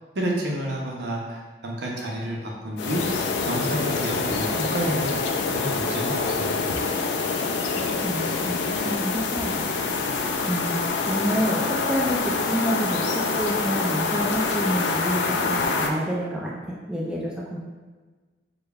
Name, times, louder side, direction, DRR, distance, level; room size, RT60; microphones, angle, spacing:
voice 1, 0.1-5.2 5.5-6.7, right 1 dB, 70° right, -2 dB, 0.7 m, -30 dB
sound 1, 2.8-15.9, left 4 dB, 80° left, 0.3 m, -26 dB
voice 2, 7.4-9.8 10.5-17.6, equal, 5° right, -5 dB, 0.3 m, -29 dB
4.9 x 2.2 x 2.3 m, 1.4 s
head